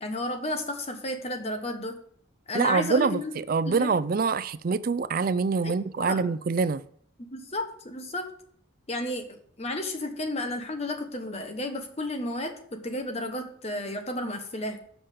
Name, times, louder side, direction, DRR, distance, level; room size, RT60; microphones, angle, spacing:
voice 1, 0.0-2.0 2.5-3.3 3.6-3.9 5.6-6.2 7.3-8.3 8.9-14.8, left 1 dB, 30° left, 1.1 m, -32 dB
voice 2, 2.5-6.8, right 5 dB, 45° right, 0.4 m, -25 dB
7.8 x 5.6 x 6.5 m
head